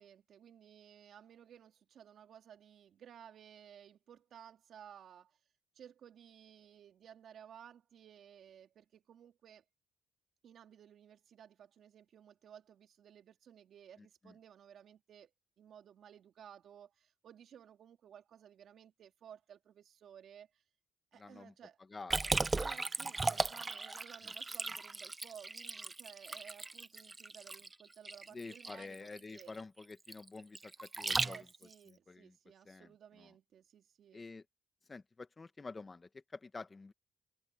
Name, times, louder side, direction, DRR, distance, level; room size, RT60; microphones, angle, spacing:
voice 1, 0.0-5.4 5.7-9.6 10.4-15.3 15.6-20.6 21.1-21.8 22.6-29.5 31.2-34.2, right 9 dB, 65° right, 3.0 m, -57 dB
voice 2, 14.0-14.3 21.1-21.5 21.9-22.3 23.3-23.4 24.2-24.3 28.3-31.5 31.9-32.3 32.6-32.9 33.2-33.3 34.1-34.4 34.9-36.9, left 3 dB, 30° left, 1.4 m, -49 dB
Liquid, 22.1-31.7, right 3 dB, 25° right, 0.7 m, -37 dB
cardioid pair, 90°, 0 cm